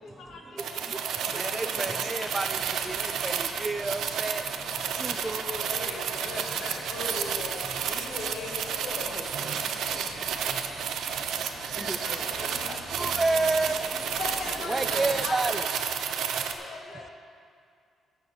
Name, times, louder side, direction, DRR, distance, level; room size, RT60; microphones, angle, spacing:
voice 1, 0.0-2.0 2.3-2.4 4.7-4.9 5.2-9.1 11.4-11.6 12.0-13.1 14.2-15.6 16.0-17.1, left 3 dB, 70° left, 0 dB, 1.5 m, -40 dB
sound 1, 0.6-16.5, right 7 dB, 75° right, 0.6 m, -31 dB
sound 2, 1.2-15.3, left 2 dB, 50° left, 1.4 m, -47 dB
voice 2, 1.3-2.6 2.9-4.4 5.0-5.4 13.0-13.8 14.7-15.6, right 3 dB, 20° right, 11 dB, 0.3 m, -29 dB
voice 3, 9.0-10.0 11.8-12.8 16.6-16.8, left 1 dB, 10° left, 4 dB, 0.8 m, -42 dB
11.0 x 4.5 x 7.7 m, 2.3 s
cardioid pair, 90°, 0 cm